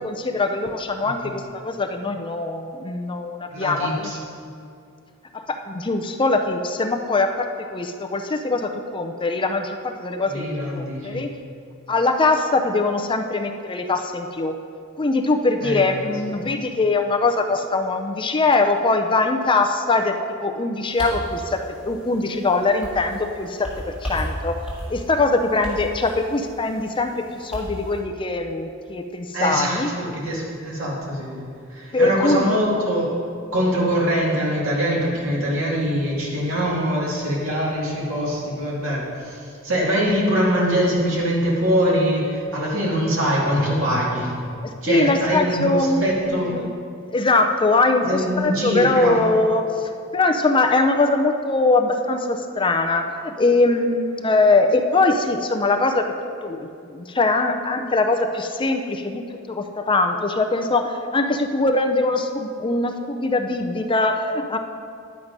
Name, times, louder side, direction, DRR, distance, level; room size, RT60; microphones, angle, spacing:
voice 1, 0.0-4.1 5.3-10.5 10.8-11.3 11.9-14.6 15.0-20.1 20.4-23.7 24.0-24.6 24.9-29.9 31.9-32.5 44.6-46.2 46.5-46.7 47.1-56.0 56.4-59.2 59.5-64.6, left 3 dB, 25° left, 5 dB, 0.5 m, -22 dB
voice 2, 3.5-4.2 10.3-11.3 15.6-16.1 16.4-16.5 29.3-33.2 33.5-44.3 44.8-46.5 48.0-49.2, equal, 70° right, -4 dB, 2.4 m, -23 dB
sound 1, 20.8-28.0, equal, 5° right, 2.9 m, -35 dB
10.5 x 7.4 x 5.2 m, 2.4 s
head